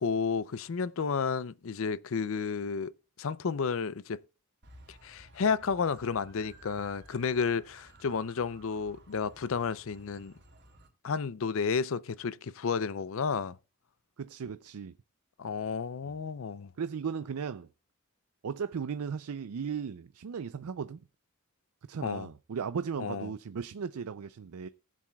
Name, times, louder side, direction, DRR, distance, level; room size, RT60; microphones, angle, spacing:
voice 1, 0.0-2.9 3.2-4.2 4.9-10.3 11.0-13.6 15.4-16.7 22.0-22.3 23.0-23.3, left 5 dB, 65° left, 0.5 m, -32 dB
sound 1, 4.6-10.9, right 1 dB, 50° right, 3.2 m, -56 dB
voice 2, 14.2-14.9 16.0-16.1 16.8-17.7 18.4-21.0 21.9-24.7, right 6 dB, 80° right, 0.4 m, -36 dB
19.5 x 7.5 x 2.3 m
head